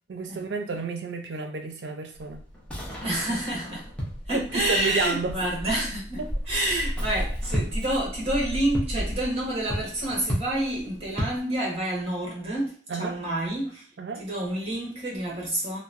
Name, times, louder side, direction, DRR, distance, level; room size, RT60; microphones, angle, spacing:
voice 1, 0.1-2.4 3.0-3.1 4.3-5.4 6.2-6.3 12.9-13.2 14.0-14.2, right 4 dB, 80° right, 0.5 m, -31 dB
sound 1, 2.1-11.4, equal, 5° left, 0.6 m, -33 dB
voice 2, 3.0-3.9 4.3-13.9 14.1-15.8, right 1 dB, 35° right, 1.1 m, -28 dB
2.9 x 2.1 x 2.5 m
head